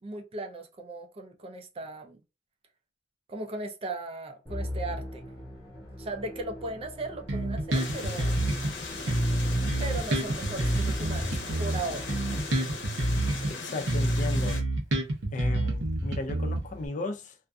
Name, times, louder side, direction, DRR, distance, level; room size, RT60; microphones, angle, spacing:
voice 1, 0.0-2.2 3.3-5.2 6.0-8.4 9.8-12.4, right 2 dB, 30° right, 0.4 m, -37 dB
Musical instrument, 4.5-13.0, left 1 dB, 15° left, 0.9 m, -42 dB
Bass guitar, 7.3-8.7 9.1-13.5 13.9-16.9, right 1 dB, 85° right, 0.7 m, -28 dB
sound 1, 7.7-14.6, left 3 dB, 90° left, 0.8 m, -38 dB
voice 2, 13.4-14.6 15.3-17.3, left 2 dB, 45° left, 0.4 m, -35 dB
2.4 x 2.4 x 2.2 m
head